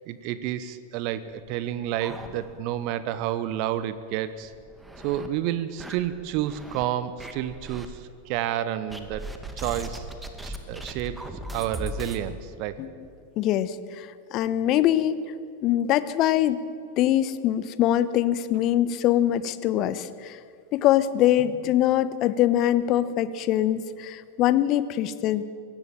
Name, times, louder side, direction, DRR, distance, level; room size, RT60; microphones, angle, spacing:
voice 1, 0.0-4.5 5.0-9.3 9.6-10.1 10.4-12.8, right 11 dB, 45° right, 14 dB, 1.0 m, -30 dB
sound 1, 1.3-2.9 3.2-3.3 3.7-3.8 4.4-5.3 5.8-6.8 7.2-7.9 8.9-12.2, right 1 dB, 5° right, 2.3 m, -38 dB
voice 2, 13.4-15.1 15.6-16.6 17.0-20.4 20.7-25.4, left 12 dB, 40° left, 15 dB, 1.1 m, -23 dB
23.5 x 18.0 x 9.0 m, 2.3 s
figure-of-eight pair, 90°, 0 cm